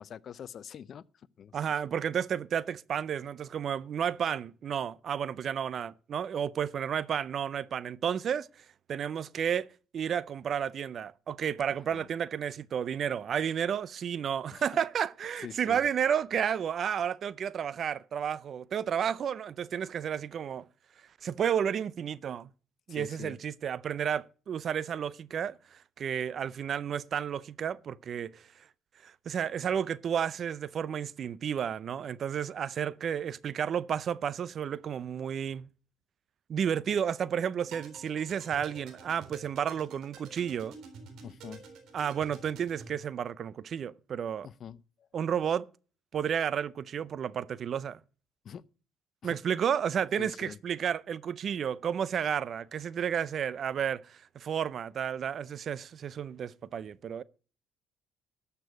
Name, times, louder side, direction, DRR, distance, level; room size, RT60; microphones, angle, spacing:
voice 1, 0.0-1.8 11.9-12.1 14.5-14.8 15.4-15.8 22.9-23.4 41.2-41.6 44.4-45.1 48.4-48.6 49.2-49.4 50.2-50.6, left 8 dB, 50° left, 0.5 m, -45 dB
voice 2, 1.5-8.5 8.9-9.7 9.9-20.6 21.2-22.5 22.9-28.7 29.0-35.7 36.5-40.7 41.9-44.5 45.1-45.6 46.1-48.0 49.2-57.2, right 8 dB, 50° right, 0.5 m, -32 dB
sound 1, 37.6-42.9, right 4 dB, 70° right, 3.7 m, -49 dB
12.5 x 6.8 x 6.4 m
supercardioid pair, 90°, 0 cm